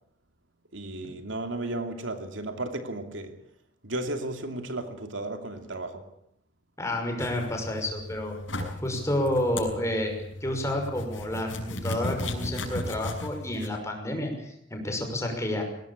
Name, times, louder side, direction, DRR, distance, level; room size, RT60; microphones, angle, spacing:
voice 1, 0.7-3.4 3.8-6.1, right 2 dB, 80° right, 2.7 m, -34 dB
voice 2, 6.8-8.3 8.8-10.2 10.4-15.6, left 1 dB, 15° left, 6.0 m, -30 dB
sound 1, 7.2-13.7, left 1 dB, 85° left, 6.4 m, -36 dB
22.0 x 18.5 x 8.7 m
head